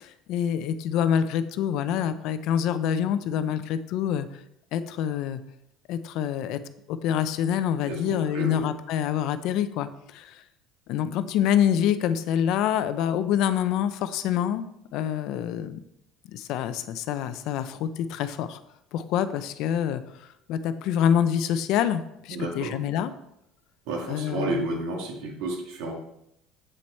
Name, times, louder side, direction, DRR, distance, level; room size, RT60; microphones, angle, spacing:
voice 1, 0.0-4.3 4.7-5.4 5.9-6.6 6.9-10.4 10.9-14.6 14.9-15.8 16.3-18.6 18.9-20.0 20.5-23.1 24.1-24.7, left 9 dB, 50° left, 12 dB, 0.6 m, -26 dB
voice 2, 7.9-8.6 22.3-22.7 23.9-25.9, right 2 dB, 65° right, 2 dB, 2.0 m, -31 dB
7.8 x 7.6 x 4.3 m, 0.79 s
cardioid pair, 170°, 0 cm